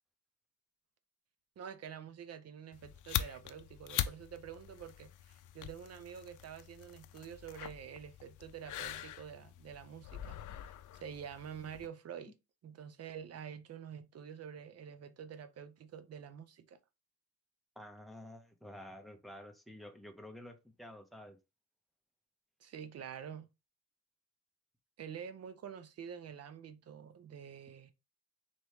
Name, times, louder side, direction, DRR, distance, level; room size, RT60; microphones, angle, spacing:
voice 1, 1.6-12.3 12.6-16.8 22.6-23.5 25.0-27.9, right 8 dB, 50° right, 0.7 m, -48 dB
sound 1, 2.7-11.9, left 12 dB, 75° left, 0.5 m, -43 dB
voice 2, 17.8-21.4, left 1 dB, ahead, 0.7 m, -50 dB
4.2 x 3.0 x 3.3 m
cardioid pair, 115°, 31 cm